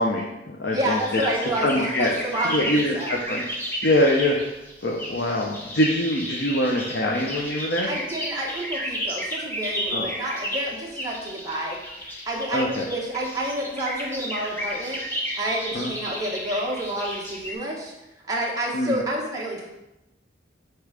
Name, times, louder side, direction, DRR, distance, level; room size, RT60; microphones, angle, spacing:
voice 1, 0.0-1.3 1.6-2.1 2.4-7.9 9.9-10.1 12.5-12.9 15.7-15.9 18.7-19.0, left 1 dB, 65° left, -1 dB, 0.8 m, -24 dB
voice 2, 0.7-3.1 7.9-11.8 12.2-15.0 15.4-17.9 18.3-19.7, right 1 dB, 20° right, -3 dB, 1.3 m, -29 dB
sound 1, 0.9-17.5, equal, 10° left, 1.1 m, -33 dB
8.0 x 3.2 x 5.1 m, 0.94 s
head